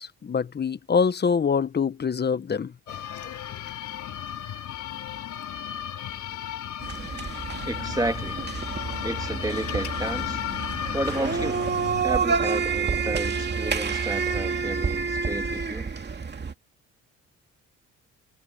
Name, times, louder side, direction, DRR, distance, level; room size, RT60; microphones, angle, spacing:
voice 1, 0.0-3.2, left 6 dB, 35° left, 1.1 m, -25 dB
sound 1, 2.9-12.0, left 10 dB, 75° left, 4.3 m, -34 dB
sound 2, 6.8-16.5, right 5 dB, 35° right, 2.5 m, -28 dB
voice 2, 7.7-8.4 9.0-10.4 10.9-11.6 12.0-15.9, right 2 dB, 10° right, 2.3 m, -32 dB
cardioid pair, 90°, 30 cm